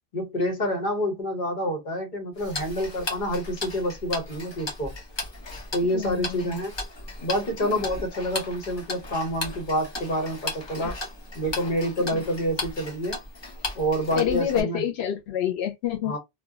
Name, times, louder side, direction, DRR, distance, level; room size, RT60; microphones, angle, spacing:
voice 1, 0.1-4.9 5.7-6.7 7.2-11.0 11.3-13.2 13.7-14.8 16.0-16.2, equal, 50° left, 1.0 m, -27 dB
Tick-tock, 2.4-14.6, left 2 dB, 35° left, 0.5 m, -36 dB
voice 2, 5.9-6.6 12.1-12.2 14.1-16.1, left 10 dB, 90° left, 0.9 m, -27 dB
2.2 x 2.0 x 3.5 m
omnidirectional pair, 1.1 m